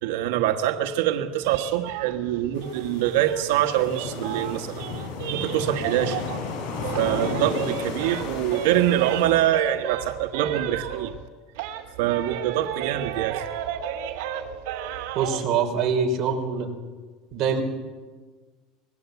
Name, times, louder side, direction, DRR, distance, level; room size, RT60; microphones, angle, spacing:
voice 1, 0.0-4.8 5.3-6.2 7.0-11.1 12.0-13.5, right 12 dB, 90° right, 5 dB, 1.5 m, -24 dB
sound 1, 1.4-6.5 6.8-11.3 11.5-15.4, right 10 dB, 65° right, 2.6 m, -34 dB
sound 2, 2.5-9.3, left 4 dB, 90° left, 7.2 m, -33 dB
voice 2, 15.1-16.7 17.3-17.6, right 6 dB, 35° right, 1 dB, 4.1 m, -24 dB
25.5 x 20.5 x 8.2 m, 1.4 s
cardioid pair, 180°, 0 cm